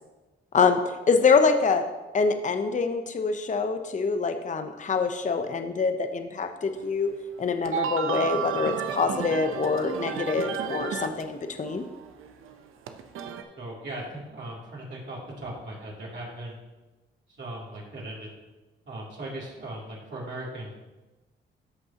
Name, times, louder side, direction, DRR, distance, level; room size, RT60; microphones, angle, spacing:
voice 1, 0.5-1.8 2.1-7.1 7.4-11.8, left 4 dB, 35° left, 7 dB, 0.7 m, -25 dB
sound 1, 6.8-6.9 7.4-11.2 11.5-13.4, right 8 dB, 75° right, 0.7 m, -32 dB
voice 2, 13.6-16.6 17.3-18.4 18.8-20.7, right 1 dB, 60° right, -5 dB, 2.8 m, -38 dB
13.5 x 5.3 x 2.9 m, 1.1 s
supercardioid pair, 55°, 21 cm